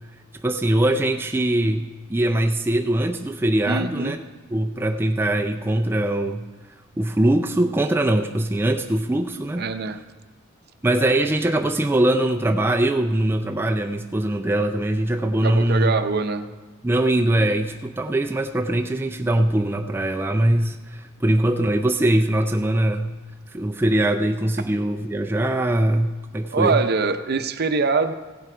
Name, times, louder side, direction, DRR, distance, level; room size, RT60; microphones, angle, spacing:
voice 1, 0.4-4.2 4.5-6.4 7.0-9.7 10.8-16.0 16.8-23.1 23.5-26.8, right 1 dB, 10° right, 3 dB, 0.4 m, -22 dB
voice 2, 3.7-4.2 9.6-10.0 15.4-16.4 26.5-28.1, right 4 dB, 50° right, 9 dB, 0.6 m, -23 dB
16.0 x 7.6 x 4.9 m, 1.3 s
head